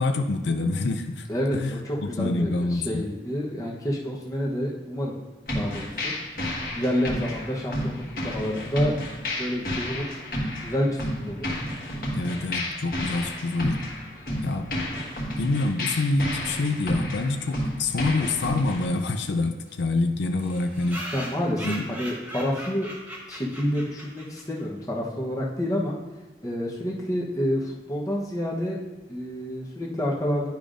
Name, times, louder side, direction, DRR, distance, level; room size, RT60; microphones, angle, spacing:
voice 1, 0.0-1.3 1.5-3.1 12.1-13.8 14.3-14.7 15.4-21.0 21.6-21.8, left 2 dB, 80° left, 5 dB, 0.5 m, -26 dB
voice 2, 1.3-5.2 5.5-6.1 6.8-8.9 9.4-10.2 10.6-11.5 21.1-22.9 23.3-26.0 26.4-28.8 29.1-30.5, equal, 20° left, -3 dB, 0.9 m, -28 dB
sound 1, 5.5-18.8, left 1 dB, 50° left, 1.4 m, -31 dB
sound 2, 18.7-18.8 19.0-19.1 19.4-19.5 19.7-19.8 20.4-24.6, equal, 10° right, 1.0 m, -39 dB
10.5 x 5.0 x 2.5 m, 1.1 s
head